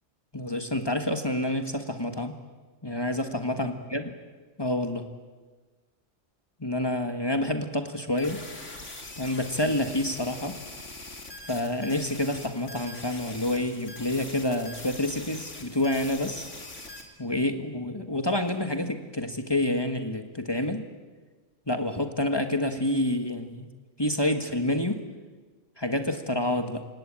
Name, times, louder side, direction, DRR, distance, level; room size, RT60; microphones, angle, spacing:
voice 1, 0.3-2.4 2.8-4.0 4.6-5.1 6.6-8.4 9.2-10.6 11.5-16.5 17.2-20.9 21.7-23.7 24.0-25.0 25.8-26.9, left 1 dB, 20° left, 7 dB, 1.7 m, -28 dB
sound 1, 8.2-17.0, left 2 dB, 75° left, 3.4 m, -42 dB
29.0 x 17.5 x 8.9 m, 1.4 s
omnidirectional pair, 1.3 m